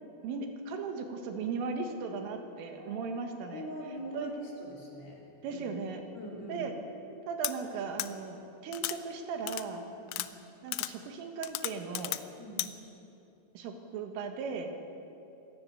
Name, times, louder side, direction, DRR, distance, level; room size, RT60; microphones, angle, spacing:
voice 1, 0.2-3.7 4.1-4.3 5.4-6.0 6.5-6.7 7.3-9.8 10.6-12.2 13.6-14.7, right 5 dB, 85° right, 4 dB, 4.2 m, -37 dB
sound 1, 2.8-8.2, left 5 dB, 40° right, 4.9 m, -58 dB
voice 2, 3.5-5.6 6.1-6.6 10.0-10.3 12.4-12.6, equal, 40° left, -2 dB, 3.6 m, -43 dB
sound 2, 7.4-7.5 8.0-8.1 8.7-9.0 9.5-9.6 10.1-10.3 10.7-10.9 11.4-12.2 12.6-12.7, left 17 dB, 85° left, 3.2 m, -34 dB
25.0 x 17.0 x 7.0 m, 2.9 s
omnidirectional pair, 5.7 m